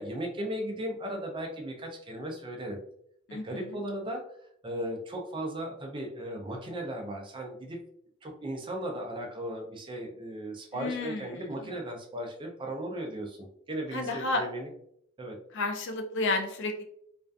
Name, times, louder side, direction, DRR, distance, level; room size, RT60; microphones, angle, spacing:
voice 1, 0.0-2.8 3.3-4.2 4.6-7.8 8.2-14.7 15.2-15.4, right 1 dB, 20° right, 2 dB, 0.4 m, -36 dB
voice 2, 3.3-3.8 10.7-11.6 13.9-14.5 15.5-16.8, left 2 dB, 55° left, 4 dB, 0.4 m, -32 dB
2.4 x 2.3 x 2.3 m, 0.70 s
head